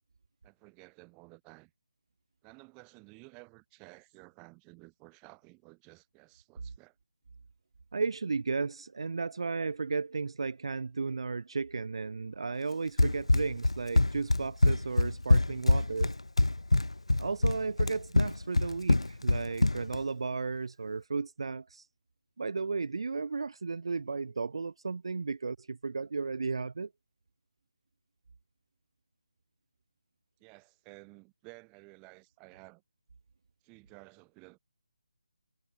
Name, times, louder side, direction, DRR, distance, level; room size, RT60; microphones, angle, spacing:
voice 1, 0.4-1.7 2.4-7.0 30.4-32.8 33.6-34.6, right 31 dB, 15° right, 4.6 m, -54 dB
voice 2, 7.9-16.2 17.2-21.9 22.4-26.9, right 4 dB, 60° right, 0.8 m, -34 dB
Run, 13.0-20.0, left 2 dB, 85° left, 0.7 m, -25 dB
figure-of-eight pair, 155°, 3 cm